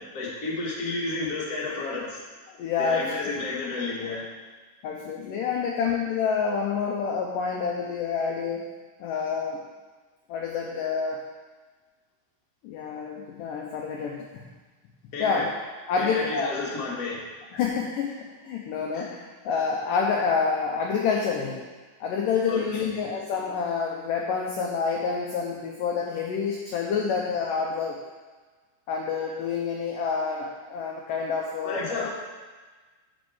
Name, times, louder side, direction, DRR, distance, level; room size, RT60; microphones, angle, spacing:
voice 1, 0.1-2.2 2.8-4.3 15.1-15.4 15.9-17.3 18.9-19.1 22.5-22.9 31.6-32.1, left 3 dB, 40° left, -5 dB, 1.2 m, -31 dB
voice 2, 2.5-3.1 4.8-8.7 9.0-9.6 10.3-11.2 12.6-14.5 15.2-15.4 15.9-16.5 17.5-21.7 22.0-28.0 28.9-32.1, left 5 dB, 85° left, -1 dB, 1.9 m, -28 dB
9.2 x 4.5 x 7.1 m, 1.3 s
omnidirectional pair, 4.9 m